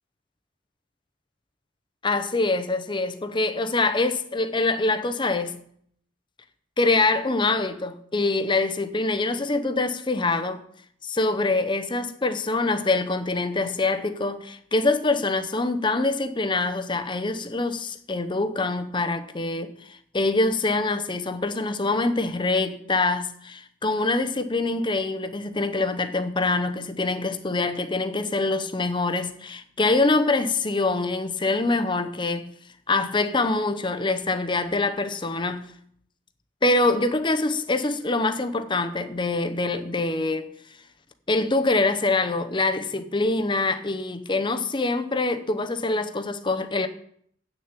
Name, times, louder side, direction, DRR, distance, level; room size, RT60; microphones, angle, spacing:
voice 1, 2.0-5.6 6.8-10.6 11.0-32.5 32.9-35.7 36.6-40.5 41.3-46.9, left 3 dB, 25° left, 0.7 m, -25 dB
8.5 x 6.7 x 8.1 m
head